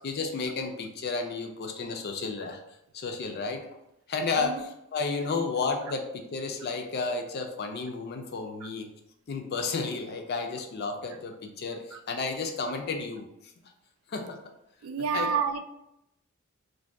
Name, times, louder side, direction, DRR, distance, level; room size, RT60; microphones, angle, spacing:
voice 1, 0.0-2.6 2.9-3.7 4.1-8.9 9.3-13.3 14.1-14.4 15.1-15.3, left 4 dB, 50° left, 5 dB, 0.4 m, -32 dB
voice 2, 14.8-15.6, right 6 dB, 75° right, 7 dB, 0.3 m, -29 dB
2.6 x 2.2 x 3.3 m, 0.82 s
head